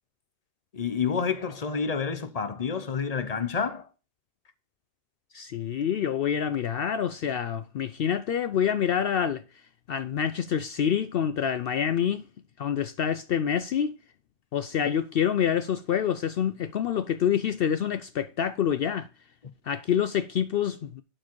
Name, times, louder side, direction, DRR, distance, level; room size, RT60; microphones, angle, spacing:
voice 1, 0.7-3.9, left 6 dB, 35° left, 0.9 m, -29 dB
voice 2, 5.3-9.4 9.9-12.2 12.6-13.9 14.5-19.1 19.7-21.0, left 8 dB, 65° left, 0.7 m, -27 dB
11.5 x 4.7 x 4.7 m
omnidirectional pair, 1.2 m